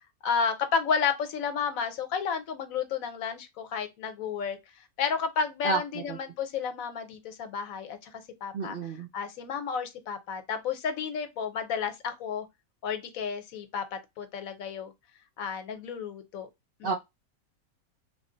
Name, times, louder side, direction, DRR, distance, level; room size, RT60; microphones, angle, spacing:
voice 1, 0.2-4.6 5.0-12.5 12.8-14.9 15.4-16.5 16.8-17.0, left 6 dB, 75° left, 1.1 m, -32 dB
voice 2, 8.5-9.1 16.8-16.9, right 4 dB, 65° right, 0.5 m, -29 dB
3.4 x 2.0 x 3.7 m
omnidirectional pair, 1.5 m